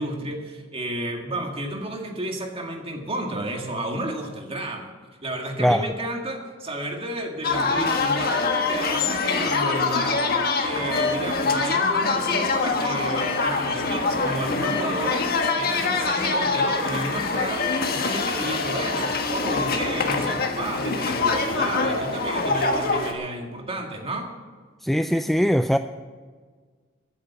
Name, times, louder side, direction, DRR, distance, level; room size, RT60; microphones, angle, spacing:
voice 1, 0.0-4.9 5.2-10.3 10.6-15.3 15.6-24.3, right 1 dB, 30° right, 2 dB, 2.0 m, -31 dB
sound 1, 7.4-23.1, left 4 dB, 50° left, 1.5 m, -24 dB
voice 2, 24.8-25.8, equal, ahead, 8 dB, 0.3 m, -20 dB
14.5 x 8.7 x 7.0 m, 1.5 s
head